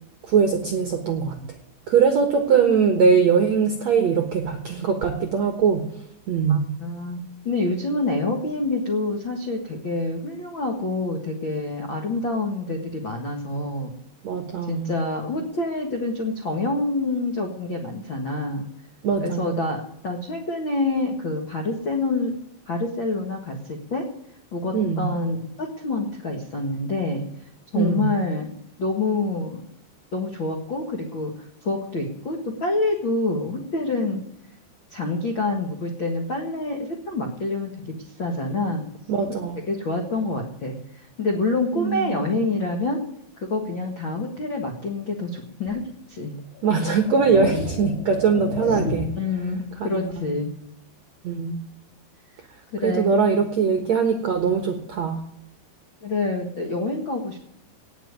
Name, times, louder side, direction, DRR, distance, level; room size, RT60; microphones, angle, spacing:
voice 1, 0.2-1.4 1.9-5.9 6.3-6.7 14.2-15.0 19.0-19.5 24.7-25.1 27.7-28.1 39.1-39.6 41.7-42.3 46.6-49.1 49.8-50.4 51.2-51.7 52.8-55.2, right 6 dB, 70° right, 6 dB, 1.6 m, -21 dB
voice 2, 6.5-13.9 14.7-18.6 19.2-22.3 22.7-24.1 24.5-27.2 27.7-28.5 28.8-29.6 30.1-31.3 31.6-34.2 34.9-37.7 38.2-38.8 39.7-43.0 43.4-45.8 46.1-46.4 48.8-50.6 52.7-53.2 56.0-57.4, left 2 dB, 70° left, 2 dB, 1.1 m, -27 dB
sound 1, 45.7-45.8 46.6-49.3, left 3 dB, 45° left, 4.6 m, -31 dB
18.0 x 6.3 x 9.5 m, 0.78 s
omnidirectional pair, 5.2 m